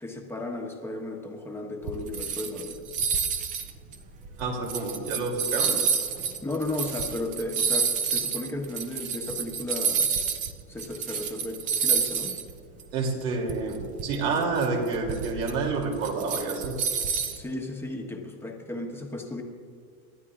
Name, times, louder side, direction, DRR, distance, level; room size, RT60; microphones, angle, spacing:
voice 1, 0.0-2.8 6.4-10.1 10.7-12.4 17.3-19.4, left 2 dB, 5° left, 0 dB, 1.2 m, -34 dB
sound 1, 1.8-10.5 10.8-12.5 12.8-12.9 13.5-17.4, right 6 dB, 20° right, 0.4 m, -29 dB
voice 2, 4.4-5.8 6.2-6.3 12.9-16.8, right 4 dB, 65° right, 0 dB, 3.0 m, -29 dB
29.5 x 12.0 x 2.5 m, 2.3 s
supercardioid pair, 160°, 45 cm